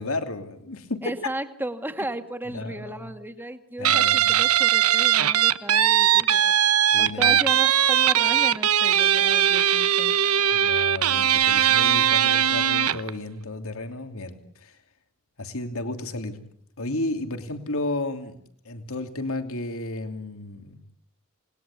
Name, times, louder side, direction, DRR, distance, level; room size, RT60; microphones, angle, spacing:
voice 1, 0.0-1.0 2.5-3.1 3.8-4.3 6.9-7.4 10.5-14.8 15.4-16.4 16.8-18.4 18.6-20.8, left 2 dB, 65° left, 8 dB, 2.8 m, -32 dB
voice 2, 1.0-10.1 10.4-10.7 11.7-11.8, right 1 dB, 10° right, 8 dB, 2.0 m, -35 dB
Guitar, 3.8-13.1, right 10 dB, 75° right, 1.1 m, -20 dB
28.5 x 20.5 x 8.4 m, 0.69 s
head